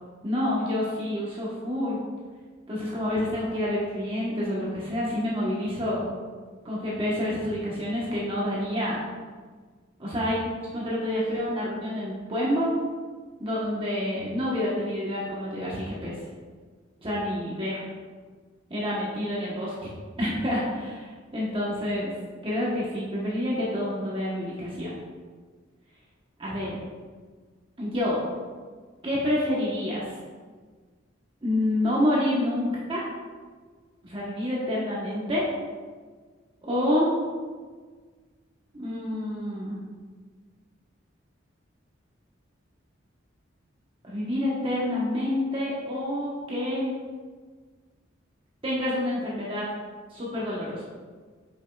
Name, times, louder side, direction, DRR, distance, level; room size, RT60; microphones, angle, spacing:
voice 1, 0.2-2.0 2.7-6.1 6.6-9.0 10.0-10.4 10.7-12.7 13.4-16.1 17.0-17.8 18.7-19.9 20.2-22.1 22.4-25.0 26.4-26.8 27.8-28.3 29.0-30.1 31.4-33.1 34.0-35.5 36.6-37.1 38.7-39.8 44.0-46.9 48.6-49.7 50.1-50.8, left 1 dB, 30° right, -7 dB, 1.1 m, -28 dB
8.3 x 5.4 x 2.3 m, 1.5 s
head